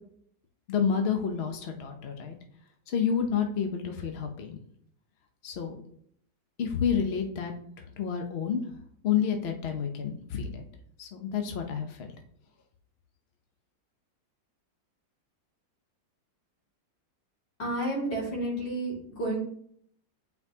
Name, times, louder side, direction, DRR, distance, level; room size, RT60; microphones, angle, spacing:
voice 1, 0.7-2.4 2.9-4.6 5.4-5.8 6.6-7.5 8.0-8.6 9.0-10.6 11.0-12.1, left 7 dB, 65° left, 4 dB, 0.6 m, -29 dB
voice 2, 17.6-19.4, right 1 dB, 90° left, -5 dB, 3.1 m, -31 dB
9.1 x 4.6 x 2.8 m, 0.65 s
omnidirectional pair, 2.0 m